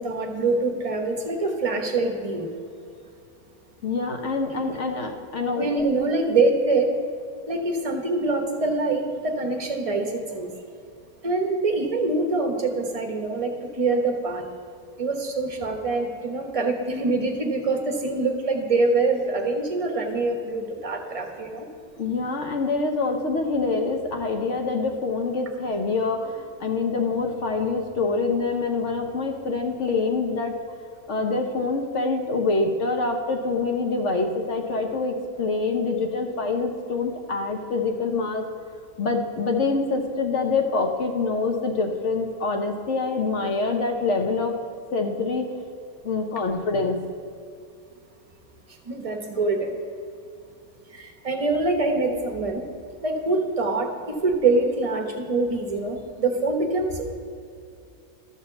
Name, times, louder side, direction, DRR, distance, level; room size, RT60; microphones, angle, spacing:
voice 1, 0.0-2.5 5.6-6.9 7.5-10.5 11.2-14.4 15.0-21.7 48.9-49.7 50.9-52.6 53.0-57.1, right 3 dB, 25° right, 3 dB, 0.9 m, -24 dB
voice 2, 3.8-5.7 22.0-30.5 31.1-38.4 39.0-44.5 44.9-45.5 46.0-47.0, left 3 dB, 55° left, 4 dB, 1.1 m, -25 dB
13.0 x 4.3 x 7.1 m, 2.4 s
omnidirectional pair, 1.7 m